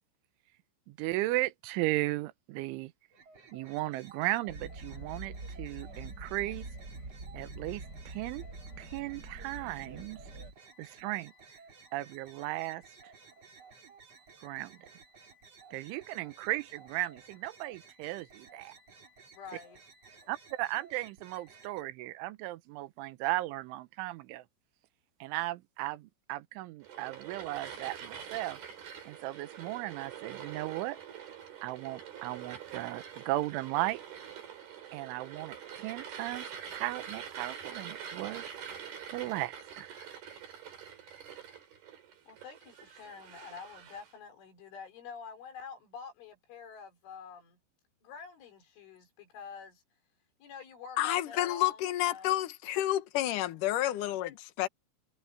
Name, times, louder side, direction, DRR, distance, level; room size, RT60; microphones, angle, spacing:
voice 1, 0.9-2.9 3.5-6.7 7.3-8.4 8.8-10.2 10.8-11.3 11.9-13.1 14.4-14.8 15.7-18.7 20.3-24.4 25.2-28.6 29.1-31.0 31.6-34.0 34.9-38.4 39.1-40.1, right 18 dB, 85° right, 3.4 m, -36 dB
sound 1, 3.1-21.8, right 4 dB, 35° right, 3.7 m, -56 dB
sound 2, 4.5-10.5, right 2 dB, 20° right, 5.3 m, -45 dB
voice 2, 19.3-19.8 40.3-40.4 42.3-47.6 48.0-49.8 50.4-52.4, left 6 dB, 85° left, 6.6 m, -47 dB
sound 3, 26.8-44.1, right 8 dB, 55° right, 5.1 m, -45 dB
voice 3, 51.0-54.7, left 14 dB, 65° left, 2.2 m, -30 dB
omnidirectional pair, 5.4 m